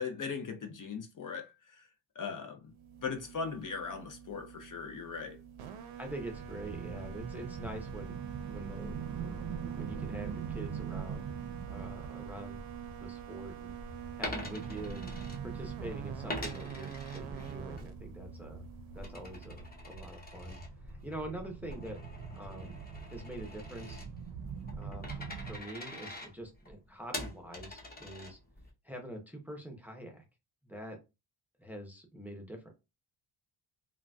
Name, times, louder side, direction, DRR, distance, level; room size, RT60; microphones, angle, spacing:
voice 1, 0.0-1.9 2.1-2.7 3.0-5.4, left 5 dB, 40° left, 0.6 m, -39 dB
sound 1, 2.7-19.9, right 10 dB, 85° right, 0.7 m, -46 dB
voice 2, 6.0-8.2 8.5-9.4 9.8-11.3 11.7-12.6 13.0-13.7 14.2-15.1 15.4-18.6 18.9-20.6 20.8-22.0 22.3-22.8 23.1-24.0 24.8-28.4 28.8-30.2 30.6-31.0 31.6-32.7, right 1 dB, 5° right, 0.6 m, -45 dB
sound 2, 6.0-25.6, right 5 dB, 45° right, 0.6 m, -43 dB
Coin (dropping), 14.1-15.8 16.3-17.9 18.2-28.7, left 1 dB, 20° left, 0.8 m, -45 dB
3.8 x 2.2 x 2.2 m
cardioid pair, 120°, 48 cm